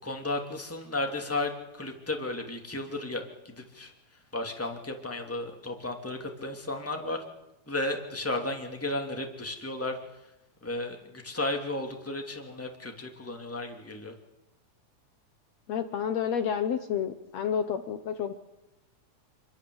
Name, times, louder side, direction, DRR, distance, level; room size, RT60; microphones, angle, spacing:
voice 1, 0.0-3.9 4.3-7.2 7.7-10.0 10.6-14.1, left 2 dB, 5° left, 2 dB, 2.7 m, -34 dB
voice 2, 15.7-18.3, left 8 dB, 65° left, 8 dB, 2.2 m, -30 dB
27.5 x 22.0 x 8.1 m, 0.91 s
omnidirectional pair, 3.5 m